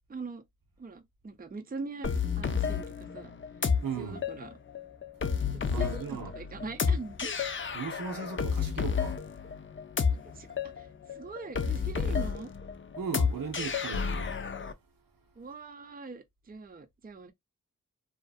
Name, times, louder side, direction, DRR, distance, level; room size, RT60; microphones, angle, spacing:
voice 1, 0.1-0.4 0.8-3.3 4.0-4.5 5.5-7.3 10.1-12.5 15.4-17.3, right 4 dB, 25° right, 0.5 m, -42 dB
sound 1, 2.0-14.7, left 6 dB, 35° left, 0.5 m, -31 dB
voice 2, 3.8-4.2 5.7-6.3 7.7-9.2 13.0-14.3, right 6 dB, 80° right, 0.7 m, -37 dB
2.5 x 2.4 x 2.3 m
wide cardioid pair, 50°, 33 cm